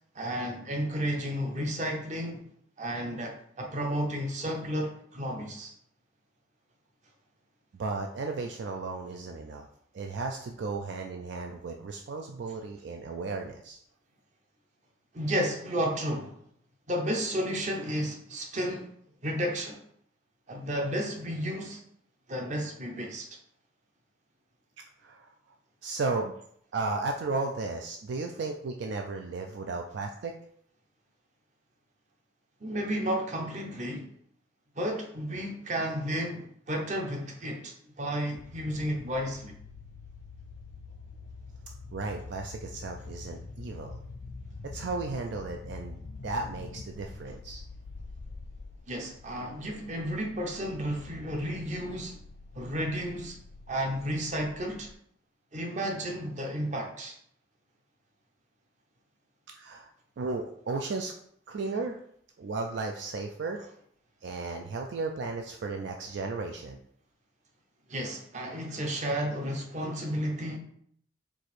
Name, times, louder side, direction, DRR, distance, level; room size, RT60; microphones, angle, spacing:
voice 1, 0.1-2.4 2.8-5.7 15.1-16.4 16.9-18.9 19.2-19.8 20.5-21.8 22.3-23.3 32.6-34.1 34.8-39.5 48.9-52.2 52.5-53.4 53.7-54.9 55.5-57.2 67.9-70.6, equal, 40° right, 2 dB, 0.7 m, -32 dB
voice 2, 7.7-9.7 9.9-13.8 25.0-25.3 25.8-26.3 26.7-30.3 41.9-44.0 44.6-46.0 46.2-47.6 59.5-59.9 60.2-61.1 61.5-62.0 62.4-63.6 64.2-66.8, right 3 dB, 65° right, 3 dB, 0.4 m, -34 dB
sound 1, 38.4-54.9, left 3 dB, 55° left, 0.3 m, -46 dB
4.6 x 2.5 x 4.2 m, 0.67 s
head